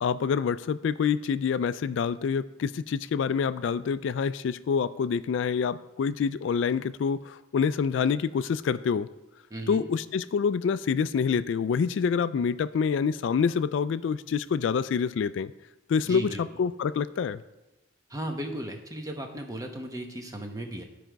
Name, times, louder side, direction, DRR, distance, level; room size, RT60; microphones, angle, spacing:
voice 1, 0.0-9.1 9.7-15.5 15.9-17.4, left 6 dB, 75° left, 15 dB, 0.3 m, -27 dB
voice 2, 9.5-9.8 16.0-16.4 18.1-20.8, right 1 dB, 15° right, 4 dB, 0.9 m, -36 dB
13.0 x 5.0 x 4.6 m, 1.1 s
head